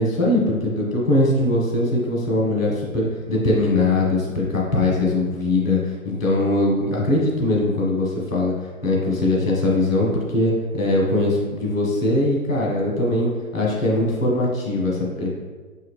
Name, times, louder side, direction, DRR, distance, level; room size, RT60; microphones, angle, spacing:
voice 1, 0.0-8.5 8.8-15.3, left 2 dB, 5° right, -7 dB, 0.4 m, -21 dB
5.7 x 2.8 x 3.3 m, 1.4 s
hypercardioid pair, 140°, 43 cm